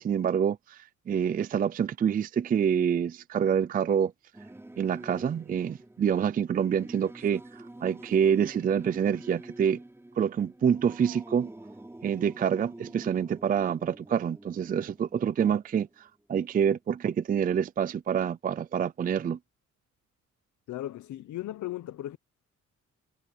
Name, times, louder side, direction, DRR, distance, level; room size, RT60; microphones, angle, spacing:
voice 1, 0.0-4.1 4.8-9.8 10.2-11.5 12.0-19.4, right 8 dB, 30° right, 0.4 m, -27 dB
Singing / Musical instrument, 4.3-16.2, right 1 dB, 10° right, 5.7 m, -48 dB
voice 2, 20.7-22.2, left 14 dB, 70° left, 0.9 m, -36 dB
cardioid pair, 145°, 30 cm